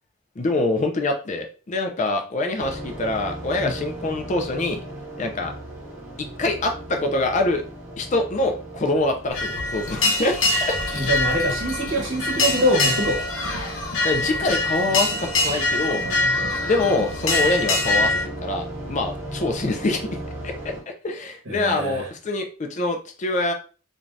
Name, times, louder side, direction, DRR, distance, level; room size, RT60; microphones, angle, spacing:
voice 1, 0.4-4.8 5.2-5.5 6.2-7.6 8.0-10.7 14.0-16.0 16.7-20.1 20.4-23.5, left 2 dB, 35° left, 5 dB, 0.4 m, -25 dB
sound 1, 2.6-20.8, right 1 dB, 10° right, 0.7 m, -37 dB
sound 2, 9.3-18.2, left 2 dB, 75° left, 0.7 m, -24 dB
voice 2, 10.9-13.2 16.0-16.6 21.5-22.1, equal, 75° right, 0 dB, 0.9 m, -24 dB
2.6 x 2.3 x 3.2 m, 0.37 s
head